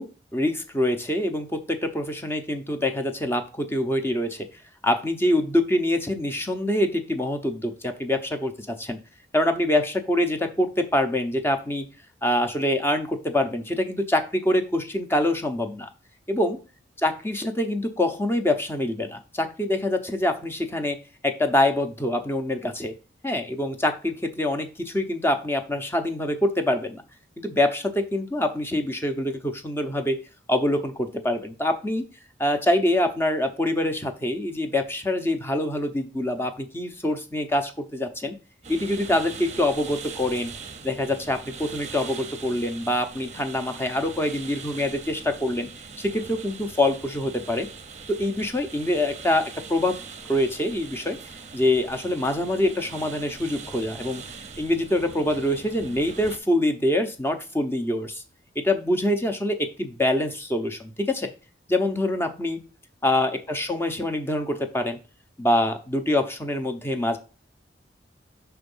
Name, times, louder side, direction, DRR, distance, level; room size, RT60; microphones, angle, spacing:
voice 1, 0.0-4.5 4.8-9.0 9.3-11.9 12.2-15.9 16.3-16.6 17.0-21.0 21.2-23.0 23.2-27.0 27.4-30.2 30.5-32.0 32.4-38.4 38.7-40.5 40.8-45.7 46.0-47.7 48.1-50.0 50.3-51.2 51.5-54.2 54.6-58.2 58.6-61.3 61.7-62.6 63.0-65.0 65.4-67.2, left 1 dB, 15° left, 6 dB, 0.7 m, -25 dB
sound 1, 38.6-56.4, right 5 dB, 35° right, 0.7 m, -41 dB
6.3 x 3.5 x 5.4 m, 0.33 s
head